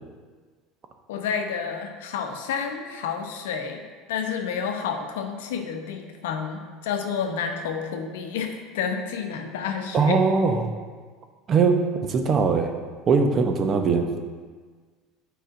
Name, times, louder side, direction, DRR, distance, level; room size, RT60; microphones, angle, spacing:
voice 1, 1.1-10.2, left 6 dB, 85° left, 5 dB, 0.7 m, -30 dB
voice 2, 9.9-10.7 11.5-12.7 13.1-14.1, right 4 dB, 40° right, 6 dB, 0.7 m, -21 dB
9.0 x 4.8 x 2.5 m, 1.5 s
supercardioid pair, 100°, 0 cm